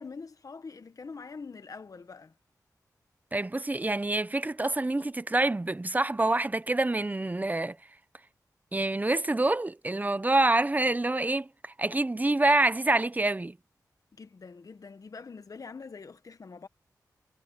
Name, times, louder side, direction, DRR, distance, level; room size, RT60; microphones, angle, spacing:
voice 1, 0.0-2.3 14.2-16.7, left 4 dB, 55° left, 1.5 m, -44 dB
voice 2, 3.3-7.8 8.7-13.6, right 2 dB, 25° right, 0.9 m, -26 dB
cardioid pair, 55°, 7 cm